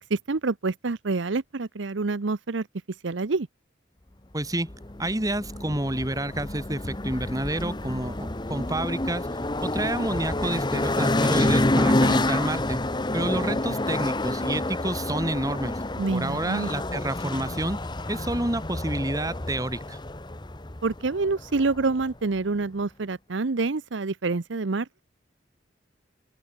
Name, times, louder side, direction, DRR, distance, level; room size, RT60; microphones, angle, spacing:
voice 1, 0.1-2.7 3.0-3.5 16.0-16.7 20.8-25.0, right 3 dB, 80° right, 0.8 m, -27 dB
voice 2, 4.3-4.7 5.0-9.3 9.6-12.8 13.1-15.7 16.1-17.8 18.1-20.0, right 1 dB, 20° right, 3.1 m, -29 dB
sound 1, 4.7-22.1, left 1 dB, 25° left, 1.2 m, -28 dB
open air
head